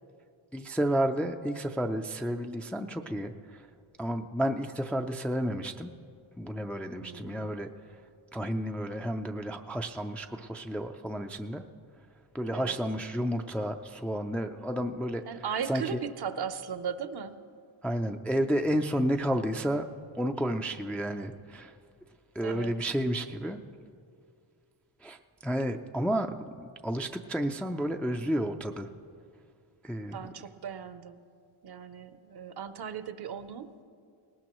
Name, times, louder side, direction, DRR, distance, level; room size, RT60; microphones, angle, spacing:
voice 1, 0.5-3.7 4.0-5.9 6.4-8.0 8.3-11.6 12.3-15.4 15.7-16.0 17.8-19.9 20.2-21.8 22.3-23.6 25.0-28.9 29.8-30.2, equal, 5° left, 5 dB, 0.4 m, -31 dB
voice 2, 7.0-7.6 12.5-12.8 15.3-17.4 22.4-22.7 30.1-31.2 31.6-33.8, right 7 dB, 50° right, 12 dB, 0.7 m, -37 dB
19.5 x 19.0 x 3.0 m, 2.2 s
cardioid pair, 110°, 49 cm